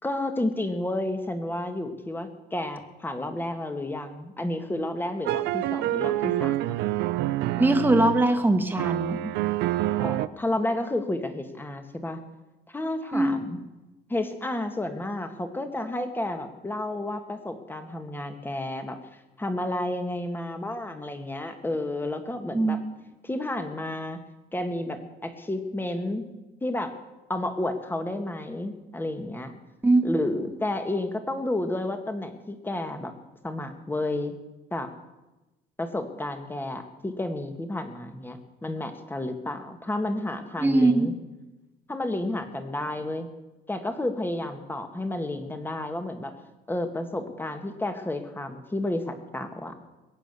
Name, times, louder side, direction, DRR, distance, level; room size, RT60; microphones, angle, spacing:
voice 1, 0.0-6.8 10.0-12.2 12.7-13.6 14.1-19.0 19.4-22.8 23.2-24.2 24.5-26.2 26.6-26.9 27.3-29.5 30.0-33.1 33.4-34.4 34.7-34.9 35.8-41.1 41.9-43.3 43.7-46.3 46.7-49.7, left 1 dB, 10° left, 7 dB, 1.9 m, -31 dB
sound 1, 5.3-8.4 8.8-10.3, right 15 dB, 85° right, 0.6 m, -27 dB
voice 2, 7.6-9.3 13.1-13.3 22.5-22.8 29.8-30.1 40.6-41.1, right 2 dB, 10° right, 6 dB, 1.6 m, -21 dB
21.5 x 9.0 x 6.9 m, 1.1 s
cardioid pair, 110°, 17 cm